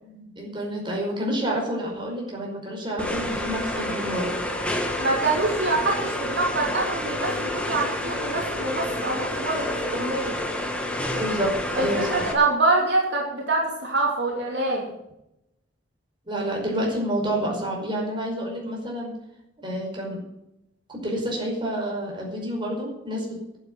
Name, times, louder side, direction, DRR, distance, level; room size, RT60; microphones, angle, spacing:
voice 1, 0.0-4.4 11.2-11.5 11.8-12.2 16.2-19.1 19.6-20.2 20.9-23.4, right 1 dB, 25° right, -1 dB, 5.3 m, -29 dB
sound 1, 3.0-12.3, left 1 dB, 5° left, 1.9 m, -29 dB
voice 2, 5.0-10.4 11.7-14.9, right 2 dB, 65° right, -2 dB, 3.0 m, -25 dB
11.5 x 8.2 x 9.1 m, 0.86 s
head